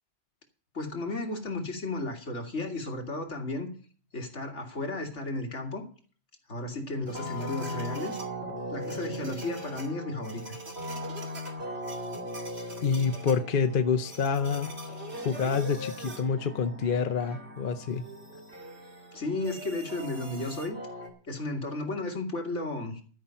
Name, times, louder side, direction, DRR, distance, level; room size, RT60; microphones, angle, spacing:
voice 1, 0.7-3.7 4.1-5.8 6.5-8.2 8.7-10.6 19.1-20.8 21.2-23.0, left 2 dB, 70° left, 2 dB, 2.6 m, -34 dB
sound 1, 7.1-21.1, equal, 60° right, 2.7 m, -39 dB
voice 2, 12.8-14.7 15.2-18.0, left 6 dB, 50° left, 6 dB, 0.9 m, -27 dB
12.5 x 5.7 x 8.8 m, 0.43 s
omnidirectional pair, 1.3 m